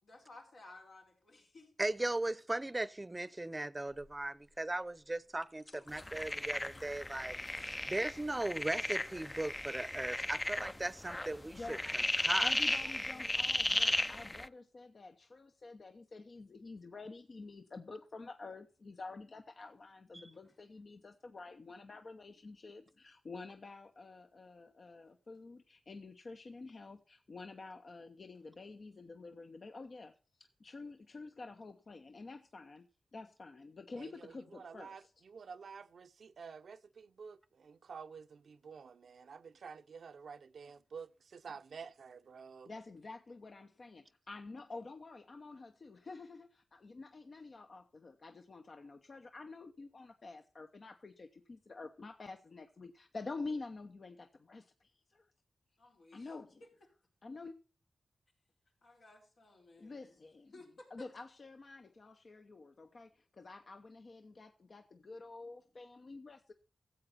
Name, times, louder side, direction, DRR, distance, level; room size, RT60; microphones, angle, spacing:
voice 1, 0.0-1.7 55.8-56.3 56.6-56.7 58.8-60.2 60.5-61.1, left 2 dB, 85° left, 4.8 m, -56 dB
voice 2, 1.8-11.8 12.2-12.5 20.1-20.2, right 2 dB, 25° right, 0.7 m, -38 dB
sound 1, 3.9-10.9, left 2 dB, 40° left, 3.0 m, -61 dB
sound 2, 6.0-14.5, left 1 dB, 20° left, 0.5 m, -35 dB
voice 3, 12.4-30.1 30.4-32.9 33.1-35.1 42.7-55.3 56.1-56.6 57.2-57.6 59.8-60.5 60.9-66.5, left 3 dB, 60° left, 0.9 m, -49 dB
voice 4, 34.0-42.7, right 6 dB, 80° right, 0.7 m, -50 dB
14.5 x 8.0 x 4.2 m
cardioid pair, 50°, 0 cm